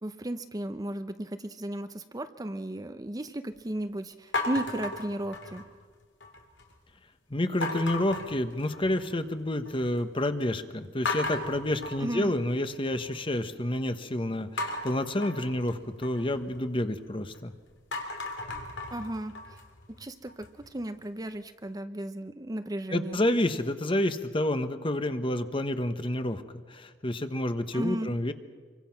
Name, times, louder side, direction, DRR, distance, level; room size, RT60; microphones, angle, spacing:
voice 1, 0.0-5.6 12.0-12.3 18.9-19.3 20.0-23.2 27.7-28.1, right 1 dB, 20° right, 9 dB, 0.7 m, -35 dB
sound 1, 4.3-5.8 6.2-6.7 7.6-9.1 9.5-10.0 10.4-10.5 11.1-13.2 14.6-17.4 17.8-20.7, left 2 dB, 85° left, 3.3 m, -36 dB
voice 2, 7.3-17.5 22.9-26.4 26.7-28.3, left 1 dB, 30° left, 9 dB, 1.2 m, -29 dB
26.5 x 24.0 x 5.9 m, 1.5 s
head